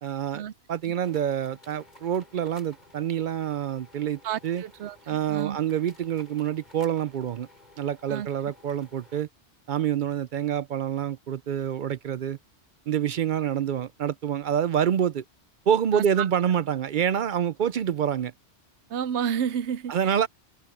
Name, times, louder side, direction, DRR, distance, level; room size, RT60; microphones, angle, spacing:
voice 1, 0.0-0.4 0.7-4.6 5.1-7.5 7.8-9.3 9.7-12.4 12.9-15.2 15.7-18.3 19.9-20.3, right 9 dB, 55° right, 0.6 m, -27 dB
sound 1, 1.0-9.2, left 2 dB, 40° left, 8.1 m, -55 dB
voice 2, 4.2-5.6 8.1-8.3 15.9-16.2 18.9-20.2, right 8 dB, 85° right, 0.9 m, -31 dB
omnidirectional pair, 1.1 m